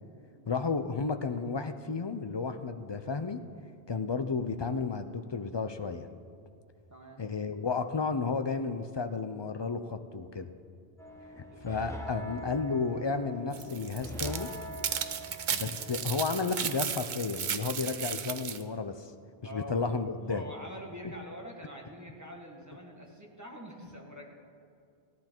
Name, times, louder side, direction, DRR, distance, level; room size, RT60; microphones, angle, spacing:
voice 1, 0.5-3.4 3.9-6.1 7.2-10.5 11.6-14.5 15.5-19.1 19.5-20.4, left 4 dB, 40° left, 8 dB, 0.4 m, -32 dB
voice 2, 6.9-7.2 11.5-11.7 19.4-19.7 20.3-24.2, equal, 15° right, -1 dB, 1.5 m, -45 dB
sound 1, 11.0-16.1, right 1 dB, 5° left, 0.8 m, -43 dB
sound 2, 13.5-18.6, right 8 dB, 55° right, 0.7 m, -35 dB
16.5 x 11.0 x 4.5 m, 2.3 s
omnidirectional pair, 1.1 m